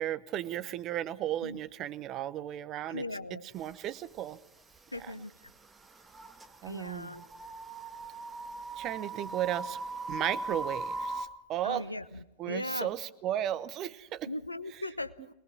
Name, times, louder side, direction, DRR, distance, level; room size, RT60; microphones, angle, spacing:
voice 1, 0.0-4.4 4.9-5.2 6.6-7.3 8.8-9.8 10.1-11.9 12.4-14.3 14.7-14.9, right 12 dB, 35° right, 15 dB, 0.9 m, -35 dB
voice 2, 2.9-3.4 4.9-5.3 6.7-7.2 11.6-12.9 14.3-15.3, left 2 dB, 85° left, 14 dB, 0.8 m, -38 dB
sound 1, 3.6-3.7 4.7-5.0 5.4-11.3, right 3 dB, 15° right, 1.5 m, -39 dB
22.0 x 20.0 x 6.1 m, 0.90 s
figure-of-eight pair, 90°, 0 cm